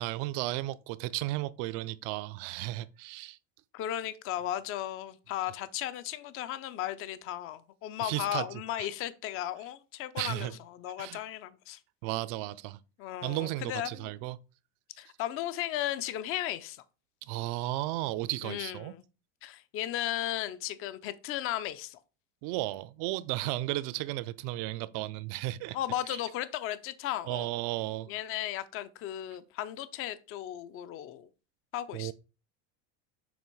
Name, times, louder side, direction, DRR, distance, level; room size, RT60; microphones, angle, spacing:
voice 1, 0.0-3.4 8.0-8.5 8.8-8.9 10.2-10.6 11.0-11.2 12.0-12.8 13.2-14.4 17.2-18.9 22.4-25.8 26.1-26.2 27.3-28.1 31.9-32.1, right 17 dB, 55° right, 0.5 m, -34 dB
voice 2, 3.7-11.8 13.0-14.1 15.0-16.8 18.4-19.0 19.4-22.0 25.7-27.5 28.1-31.3 31.7-32.1, left 12 dB, 35° left, 0.5 m, -35 dB
7.2 x 3.0 x 4.5 m
supercardioid pair, 140°, 37 cm